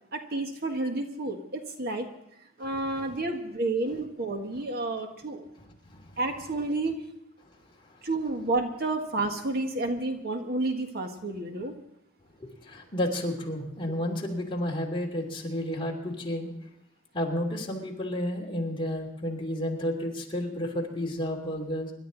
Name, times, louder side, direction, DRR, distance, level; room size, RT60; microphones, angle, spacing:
voice 1, 0.1-2.1 2.6-5.5 6.2-7.0 8.0-11.7, right 2 dB, 55° right, 4 dB, 1.7 m, -30 dB
voice 2, 5.6-6.2 7.8-8.0 12.4-16.5 17.1-21.9, left 1 dB, 25° left, -1 dB, 2.9 m, -31 dB
26.5 x 12.0 x 4.0 m, 0.77 s
head